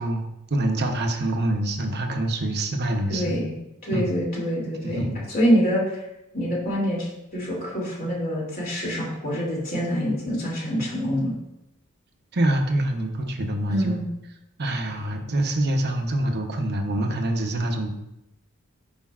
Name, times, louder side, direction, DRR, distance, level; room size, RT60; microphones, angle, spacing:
voice 1, 0.0-3.4 3.9-4.1 4.8-5.2 12.3-14.0 14.6-17.9, right 1 dB, 50° right, 4 dB, 0.9 m, -25 dB
voice 2, 3.1-3.5 3.8-6.0 6.3-11.3 13.7-14.1, equal, 45° left, -4 dB, 2.8 m, -25 dB
11.5 x 5.1 x 2.5 m, 0.88 s
head